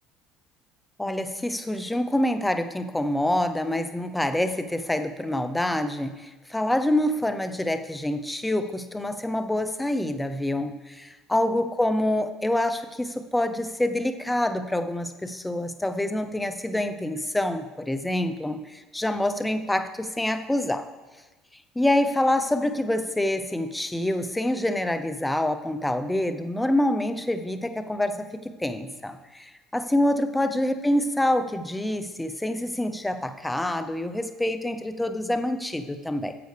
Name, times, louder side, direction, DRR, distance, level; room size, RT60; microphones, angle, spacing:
voice 1, 1.0-20.8 21.8-36.3, left 1 dB, 10° left, 8 dB, 0.7 m, -26 dB
11.5 x 7.7 x 3.4 m, 1.2 s
supercardioid pair, 80°, 0 cm